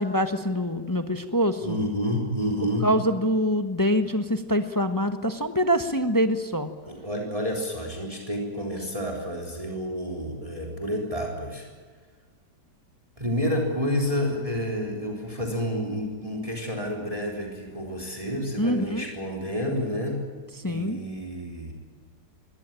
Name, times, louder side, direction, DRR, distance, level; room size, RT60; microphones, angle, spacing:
voice 1, 0.0-1.8 2.8-6.7 18.6-19.1 20.6-21.0, equal, 15° left, 8 dB, 0.9 m, -25 dB
voice 2, 1.6-2.9 6.9-11.7 13.2-20.2 20.7-21.7, equal, 15° right, 1 dB, 3.9 m, -29 dB
23.0 x 18.0 x 9.0 m, 1.5 s
omnidirectional pair, 2.0 m